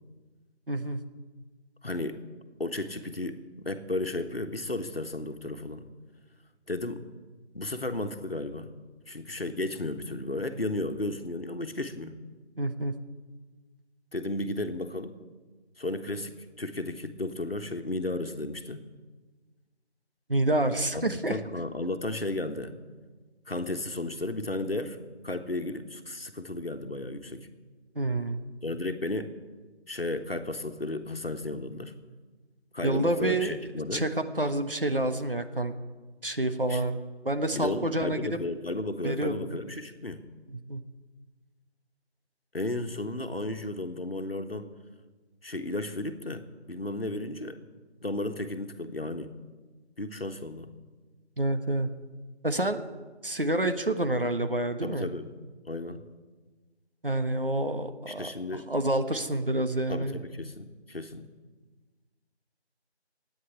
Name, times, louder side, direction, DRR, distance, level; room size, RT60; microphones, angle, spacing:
voice 1, 0.7-1.0 12.6-12.9 20.3-21.4 27.9-28.4 32.8-35.7 36.2-38.4 39.0-39.3 40.5-40.8 51.4-51.9 52.4-52.8 53.2-55.0 57.0-60.2, right 1 dB, 55° right, 8 dB, 1.3 m, -28 dB
voice 2, 1.8-2.2 2.6-5.8 6.7-7.0 7.5-8.7 9.1-12.2 14.1-15.2 15.8-16.3 16.6-18.8 20.9-22.8 23.5-25.0 25.2-27.5 28.6-29.3 29.9-31.9 32.7-34.1 36.7-36.8 37.5-40.3 42.5-44.7 45.4-47.6 48.0-49.3 50.0-50.7 54.8-55.3 55.7-56.1 58.1-58.7 59.9-61.3, left 2 dB, 60° left, 7 dB, 1.4 m, -34 dB
14.5 x 9.6 x 9.9 m, 1.3 s
figure-of-eight pair, 170°, 34 cm